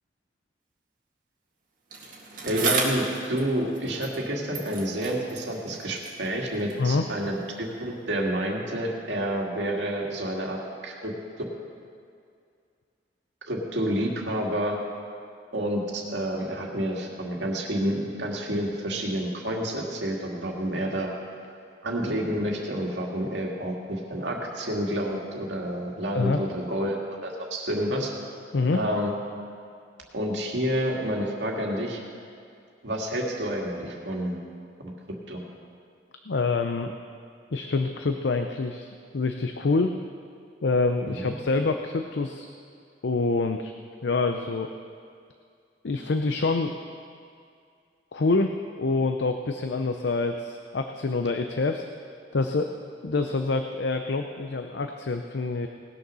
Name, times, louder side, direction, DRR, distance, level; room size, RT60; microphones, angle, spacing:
Bicycle, 1.9-4.3 4.5-6.9 7.7-7.8, right 4 dB, 50° right, 2.0 m, -33 dB
voice 1, 2.5-11.1 13.5-14.8 15.5-21.1 21.8-27.0 27.2-28.1 28.7-29.1 30.1-32.0 32.8-34.4 34.8-34.9 35.3-35.4 41.1-41.3, right 1 dB, 80° right, -1 dB, 2.0 m, -29 dB
voice 2, 36.3-36.9 37.5-40.0 40.6-42.5 43.0-43.7 44.0-44.7 45.8-46.8 48.1-51.8 52.3-52.7 53.0-55.7, left 3 dB, 75° left, 6 dB, 0.6 m, -26 dB
18.5 x 6.7 x 6.2 m, 2.3 s
head